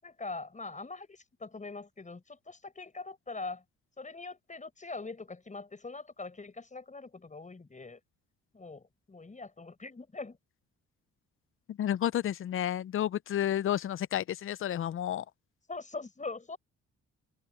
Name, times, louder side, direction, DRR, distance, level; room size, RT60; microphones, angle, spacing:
voice 1, 0.0-3.6 4.0-8.0 8.5-10.4 15.7-16.6, left 3 dB, 25° left, 6.1 m, -42 dB
voice 2, 11.7-15.2, left 11 dB, 45° left, 0.5 m, -31 dB
cardioid pair, 90°, 30 cm